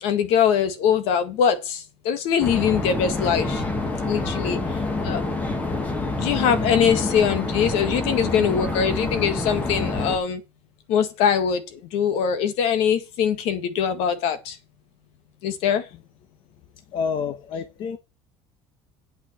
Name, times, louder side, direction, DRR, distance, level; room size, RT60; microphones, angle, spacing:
voice 1, 0.0-3.6 4.0-4.6 5.0-5.2 6.2-10.4 10.9-14.6 15.4-15.8, left 7 dB, 65° left, 1.7 m, -22 dB
sound 1, 2.4-10.2, left 2 dB, 15° left, 1.4 m, -27 dB
voice 2, 16.9-18.0, left 6 dB, 45° left, 0.9 m, -28 dB
8.6 x 5.9 x 7.4 m
cardioid pair, 175°, 11 cm